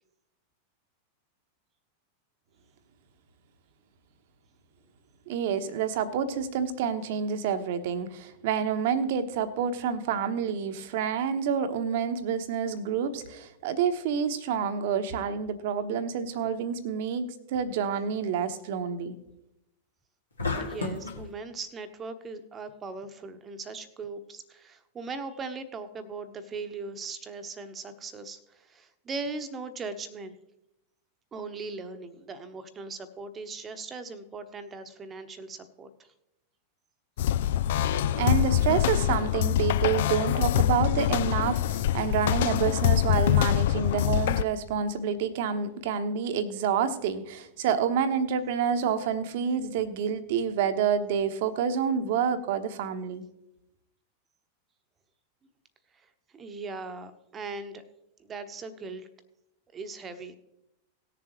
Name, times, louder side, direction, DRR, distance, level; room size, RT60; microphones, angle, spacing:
voice 1, 5.3-19.1 38.2-53.2, right 7 dB, 50° right, 11 dB, 1.0 m, -28 dB
sound 1, 20.4-21.3, left 3 dB, 75° left, 1.8 m, -31 dB
voice 2, 20.6-30.3 31.3-36.1 56.3-57.8 58.2-59.1 59.7-60.4, right 4 dB, 20° right, 9 dB, 1.0 m, -39 dB
sound 2, 37.2-44.4, left 12 dB, 55° left, 0.3 m, -25 dB
18.5 x 7.1 x 3.1 m, 0.87 s
figure-of-eight pair, 90°, 0 cm